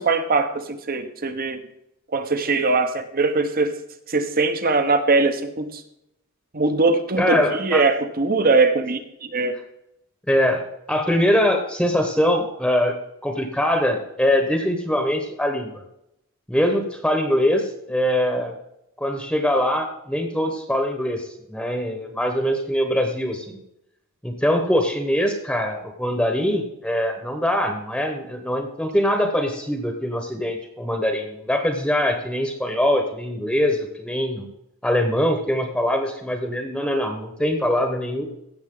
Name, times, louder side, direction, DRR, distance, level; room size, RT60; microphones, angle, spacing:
voice 1, 0.0-1.6 2.1-3.7 4.1-5.8 6.5-9.6, right 3 dB, 40° right, 8 dB, 1.1 m, -21 dB
voice 2, 7.2-7.8 10.3-12.9 13.2-15.8 16.5-18.6 19.0-23.6 24.2-34.5 34.8-38.2, left 1 dB, 5° left, 4 dB, 1.1 m, -23 dB
16.0 x 7.2 x 3.8 m, 0.81 s
head